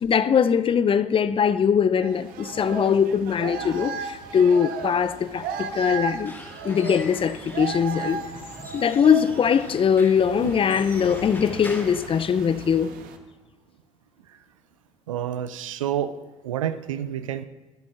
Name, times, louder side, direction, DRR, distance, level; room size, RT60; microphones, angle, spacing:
voice 1, 0.0-6.3 6.6-8.2 8.7-12.9, left 7 dB, 35° left, 0.6 m, -21 dB
sound 1, 2.0-13.2, right 5 dB, 60° right, 1.3 m, -36 dB
Squeak / Wood, 6.0-12.9, left 2 dB, 15° left, 3.3 m, -43 dB
voice 2, 15.1-16.2 16.4-17.4, right 10 dB, 75° right, 0.6 m, -29 dB
24.0 x 12.0 x 2.6 m
figure-of-eight pair, 55°, 17 cm